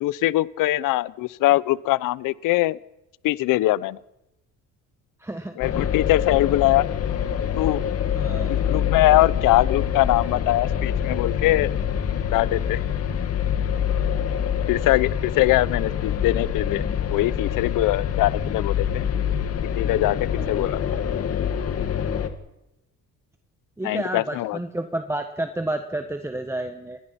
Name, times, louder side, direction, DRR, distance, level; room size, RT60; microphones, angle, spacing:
voice 1, 0.0-2.8 3.2-4.0 5.6-6.9 7.6-7.8 8.5-11.7 12.3-12.8 14.7-19.0 19.8-20.8 23.8-24.6, left 17 dB, 90° left, 19 dB, 0.8 m, -22 dB
voice 2, 5.2-5.9 8.1-8.6 20.4-20.5 23.8-27.0, right 1 dB, 10° right, 6 dB, 1.3 m, -31 dB
sound 1, 5.6-22.3, left 8 dB, 50° left, 2.1 m, -25 dB
28.0 x 21.0 x 5.9 m, 0.90 s
cardioid pair, 145°, 31 cm